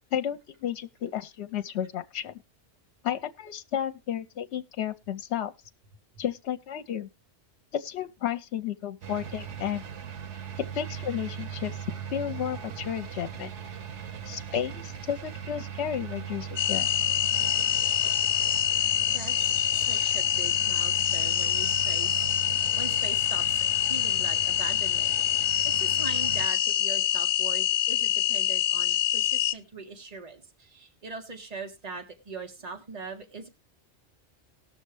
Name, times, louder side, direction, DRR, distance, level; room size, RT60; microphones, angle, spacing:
voice 1, 0.1-2.4 3.0-5.5 6.2-7.1 7.7-9.8 10.7-11.8 12.1-13.5 14.3-16.9, left 9 dB, 70° left, 1.0 m, -32 dB
sound 1, 9.0-26.5, right 8 dB, 85° right, 1.2 m, -39 dB
sound 2, 16.6-29.5, left 11 dB, 45° left, 0.6 m, -26 dB
voice 2, 19.1-33.5, right 4 dB, 35° right, 1.6 m, -41 dB
18.5 x 6.4 x 3.2 m
omnidirectional pair, 1.2 m